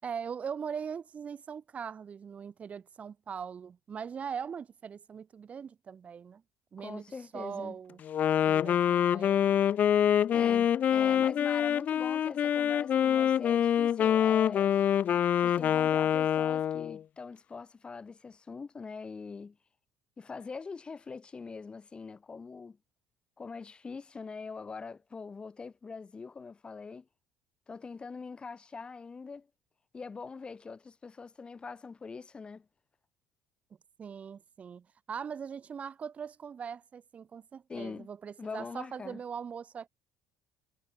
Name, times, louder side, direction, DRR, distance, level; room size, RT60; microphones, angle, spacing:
voice 1, 0.0-6.4 6.7-7.0 7.3-8.0 8.5-9.5 34.0-39.9, right 7 dB, 40° right, 6.4 m, -41 dB
voice 2, 6.8-7.8 10.3-14.7 15.4-19.6 20.2-22.8 23.4-27.1 27.7-29.5 29.9-32.7 37.7-38.1 38.4-39.2, left 4 dB, 30° left, 4.2 m, -43 dB
Wind instrument woodwind instrument, 8.0-17.0, left 9 dB, 50° left, 0.5 m, -26 dB
supercardioid pair, 85°, 4 cm